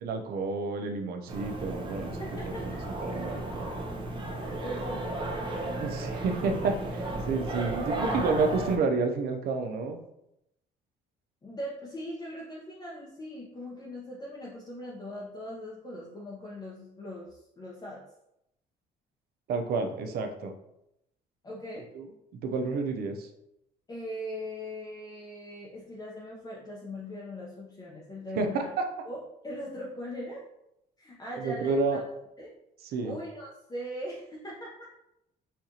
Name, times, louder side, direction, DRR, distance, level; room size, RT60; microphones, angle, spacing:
voice 1, 0.0-2.2 2.6-2.8 3.0-3.7 5.8-10.0 19.5-20.5 21.9-22.1 22.4-23.3 28.4-28.8 31.4-32.0 32.9-33.2, right 4 dB, 65° right, 5 dB, 0.5 m, -30 dB
sound 1, 1.3-8.8, right 1 dB, 30° right, 0.7 m, -34 dB
voice 2, 2.2-2.8 4.3-6.0 11.4-18.0 21.4-21.9 23.9-28.7 29.1-29.2 29.4-30.4 31.0-32.0 32.4-32.5 33.0-34.8, equal, 25° left, -4 dB, 0.6 m, -40 dB
4.4 x 2.4 x 2.7 m, 0.83 s
cardioid pair, 110°, 17 cm